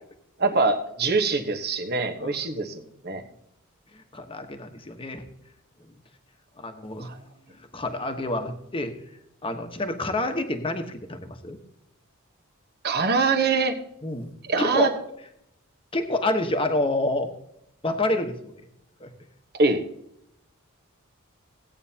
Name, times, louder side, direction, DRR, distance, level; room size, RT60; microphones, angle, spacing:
voice 1, 0.4-3.2 7.0-7.2 12.8-13.8 14.5-14.9 19.6-19.8, right 3 dB, 50° right, 6 dB, 1.1 m, -24 dB
voice 2, 3.9-5.2 6.6-7.1 7.7-8.9 9.4-11.6 14.0-14.3 14.6-14.9 15.9-17.3 17.8-18.5 19.0-19.1, left 2 dB, 25° left, 6 dB, 1.1 m, -28 dB
16.5 x 8.9 x 2.8 m, 0.78 s
head